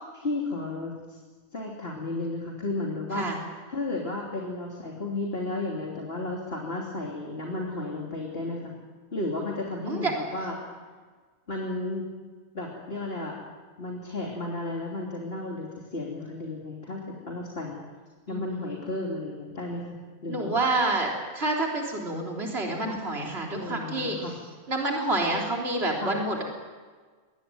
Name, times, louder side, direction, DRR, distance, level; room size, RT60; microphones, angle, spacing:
voice 1, 0.1-0.9 1.5-3.3 3.7-8.7 9.1-10.6 11.5-12.0 12.5-13.4 13.8-17.0 17.3-17.8 18.3-20.0 20.2-20.6 22.9-23.0 23.5-24.3 26.0-26.2, left 2 dB, 40° left, -1 dB, 3.3 m, -33 dB
voice 2, 18.3-18.8 20.3-24.2 24.7-26.4, right 2 dB, 45° right, -1 dB, 3.9 m, -28 dB
23.5 x 19.0 x 9.2 m, 1.5 s
omnidirectional pair, 1.5 m